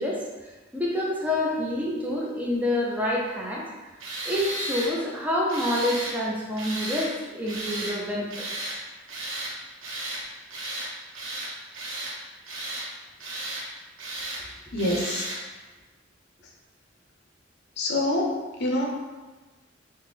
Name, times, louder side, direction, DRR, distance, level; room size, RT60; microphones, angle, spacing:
voice 1, 0.0-3.7 4.2-8.5, left 1 dB, 10° right, -3 dB, 0.4 m, -27 dB
Tools, 4.0-4.9 5.5-6.2 6.6-7.1 7.5-8.0 8.3-8.8 9.1-9.5 9.8-10.2 10.5-10.9 11.1-12.1 12.5-12.9 13.2-13.6 14.0-14.4 14.8-15.4, right 2 dB, 85° right, 0.7 m, -34 dB
voice 2, 14.7-15.3 17.8-18.8, left 1 dB, 60° left, -1 dB, 0.5 m, -26 dB
3.2 x 2.1 x 3.4 m, 1.2 s
head